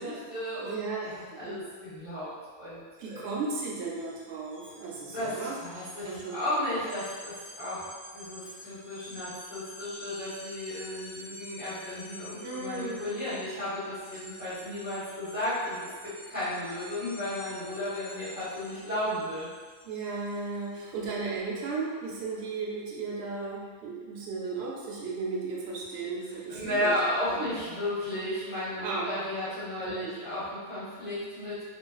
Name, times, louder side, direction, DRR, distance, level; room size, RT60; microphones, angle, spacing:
voice 1, 0.0-2.3 2.5-3.3 5.0-15.8 16.0-19.5 26.5-31.6, left 1 dB, 10° right, -14 dB, 0.8 m, -34 dB
voice 2, 0.6-1.6 3.0-5.5 6.0-6.4 12.4-13.0 19.8-26.9 27.3-27.4 28.8-29.1 29.8-30.2, right 4 dB, 70° right, -4 dB, 0.8 m, -35 dB
sound 1, 3.0-3.2 3.5-20.7, equal, 85° left, 1.2 m, -49 dB
2.5 x 2.2 x 2.3 m, 1.5 s
omnidirectional pair, 1.2 m